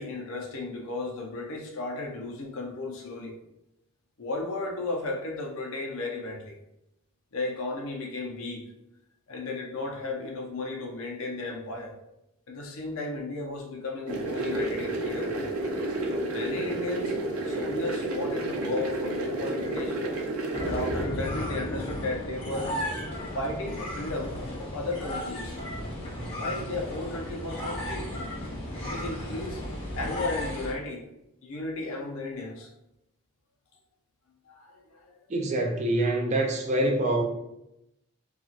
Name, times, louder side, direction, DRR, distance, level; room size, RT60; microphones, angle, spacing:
voice 1, 0.0-3.4 4.2-6.6 7.3-8.6 9.3-11.9 12.5-15.5 16.3-17.2 17.4-20.0 20.6-22.8 23.3-25.6 26.3-28.1 28.9-29.6 29.9-31.0 31.4-32.7 34.5-35.1, left 2 dB, 75° left, 0.6 m, -34 dB
sound 1, 14.1-21.1, right 2 dB, 80° right, 0.6 m, -30 dB
sound 2, 20.5-30.7, left 1 dB, 25° left, 0.6 m, -34 dB
voice 2, 35.3-37.2, right 1 dB, 35° right, 0.3 m, -25 dB
2.8 x 2.3 x 2.8 m
head